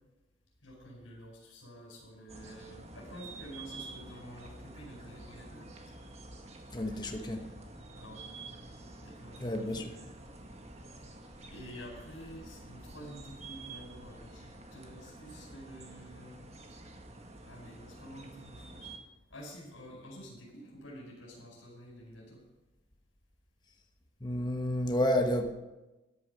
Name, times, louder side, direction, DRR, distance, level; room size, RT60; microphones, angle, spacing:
voice 1, 0.6-5.7 6.8-7.6 7.9-8.3 9.0-9.9 11.4-16.4 17.5-18.9 19.3-22.4, equal, 85° left, -4 dB, 4.5 m, -49 dB
sound 1, 2.3-19.0, right 2 dB, 35° right, 1.5 m, -49 dB
voice 2, 6.7-7.4 9.4-9.8 24.2-25.5, left 1 dB, 20° left, 4 dB, 1.2 m, -30 dB
13.5 x 10.5 x 5.5 m, 1.0 s
head